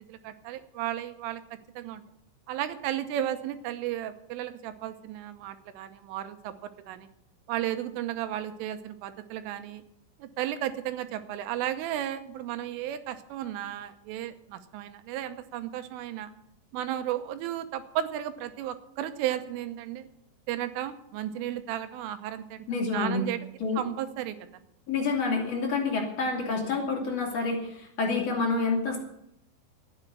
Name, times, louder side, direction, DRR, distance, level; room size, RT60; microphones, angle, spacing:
voice 1, 0.1-2.0 2.5-6.5 6.9-7.1 7.5-9.8 10.2-16.3 16.7-20.1 20.5-22.6 22.9-23.4 23.8-24.4, right 12 dB, 85° right, 9 dB, 3.4 m, -34 dB
voice 2, 22.7-23.2 23.6-23.8 24.9-29.1, left 4 dB, 40° left, -1 dB, 3.3 m, -28 dB
12.0 x 9.5 x 9.6 m, 0.78 s
omnidirectional pair, 5.7 m